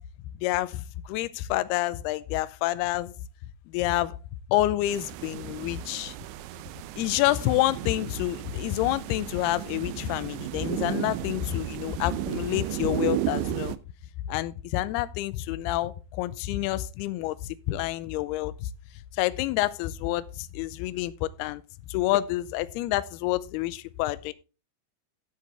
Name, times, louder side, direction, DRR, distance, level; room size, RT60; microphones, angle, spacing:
voice 1, 0.4-3.1 3.7-4.2 4.5-6.2 7.0-13.8 14.3-17.4 17.7-18.7 19.2-21.6 21.9-24.3, left 15 dB, 80° left, 2.4 m, -28 dB
sound 1, 4.9-13.8, right 15 dB, 90° right, 3.0 m, -34 dB
13.0 x 8.5 x 3.4 m
omnidirectional pair, 5.2 m